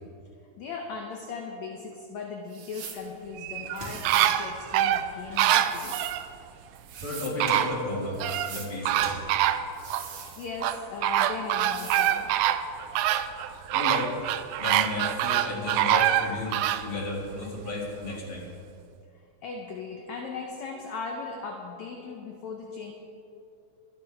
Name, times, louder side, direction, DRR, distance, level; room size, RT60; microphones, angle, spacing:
voice 1, 0.6-6.0 10.4-12.4 19.4-22.9, left 4 dB, 70° left, 2 dB, 1.9 m, -38 dB
sound 1, 2.5-3.1 3.7-4.4 5.3-6.2 6.7-7.4 8.1-8.7 9.7-10.8 11.6-12.2, right 7 dB, 60° right, 2.2 m, -42 dB
sound 2, 3.4-6.3 7.0-7.1 7.4-8.5 8.9-10.1 10.6-16.9 17.3-17.4, right 12 dB, 85° right, 1.8 m, -25 dB
sound 3, 3.5-9.9, right 1 dB, 15° right, 2.8 m, -46 dB
voice 2, 7.0-8.2 8.5-9.2 13.7-14.1 14.6-18.5, left 2 dB, 40° left, -4 dB, 3.1 m, -33 dB
24.0 x 10.5 x 3.6 m, 2.6 s
omnidirectional pair, 4.0 m